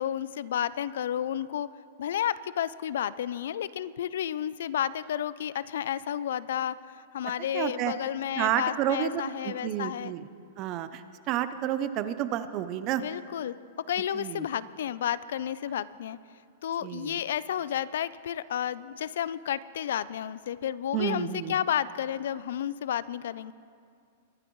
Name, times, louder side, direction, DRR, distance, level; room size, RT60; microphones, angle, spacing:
voice 1, 0.0-1.7 2.0-10.1 13.0-13.6 13.9-16.2 16.6-23.5, left 10 dB, 65° left, 18 dB, 0.3 m, -31 dB
voice 2, 7.5-7.9 8.4-10.2 10.6-13.0 14.1-14.5 16.8-17.2 20.9-21.5, right 11 dB, 25° right, 12 dB, 0.4 m, -30 dB
22.5 x 11.5 x 3.1 m, 2.2 s
supercardioid pair, 175°, 0 cm